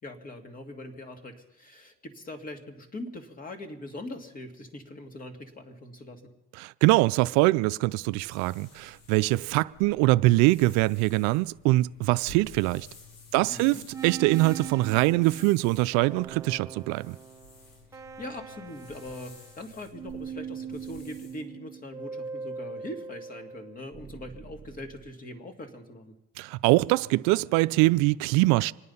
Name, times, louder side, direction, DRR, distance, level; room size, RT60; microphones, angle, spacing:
voice 1, 0.0-6.2 13.3-13.8 17.9-26.1, left 1 dB, 30° left, 2.2 m, -42 dB
voice 2, 6.6-12.9 13.3-17.2 26.4-28.7, right 20 dB, 70° right, 0.4 m, -23 dB
sound 1, 8.1-21.4, left 4 dB, 80° left, 3.1 m, -52 dB
sound 2, 13.9-19.7 19.9-25.1, right 6 dB, 10° right, 1.0 m, -41 dB
26.0 x 9.7 x 5.5 m
supercardioid pair, 105°, 30 cm